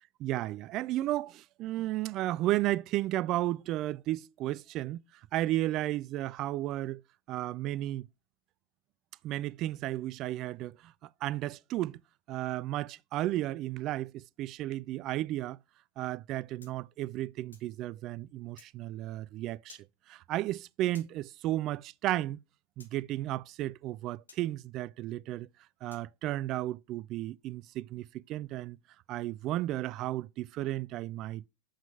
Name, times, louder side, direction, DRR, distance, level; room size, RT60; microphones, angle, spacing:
voice 1, 0.2-5.0 5.3-7.0 7.3-8.1 9.2-10.9 11.2-12.0 12.3-15.6 16.0-19.8 20.1-22.4 22.8-25.5 25.8-28.8 29.1-31.4, right 15 dB, 35° right, 0.3 m, -33 dB
sound 1, 16.6-17.7 18.6-18.7 19.7-19.9 20.9-21.1 22.8-22.9 24.3-24.4 25.9-26.1, left 4 dB, 75° left, 1.3 m, -55 dB
7.3 x 5.0 x 3.3 m
figure-of-eight pair, 90°, 0 cm